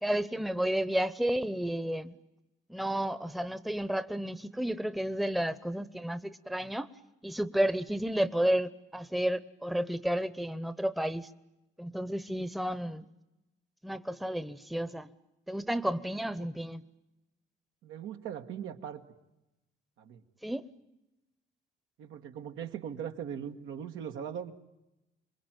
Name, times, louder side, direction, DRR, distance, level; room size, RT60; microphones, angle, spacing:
voice 1, 0.0-2.2 2.7-6.9 7.2-11.3 11.8-13.1 13.8-15.1 15.5-16.8 20.4-20.7, right 1 dB, ahead, 15 dB, 0.9 m, -31 dB
voice 2, 17.8-19.0 20.0-20.2 22.0-24.5, right 8 dB, 85° right, 5 dB, 1.8 m, -40 dB
26.5 x 22.0 x 9.1 m, 0.95 s
cardioid pair, 90°, 20 cm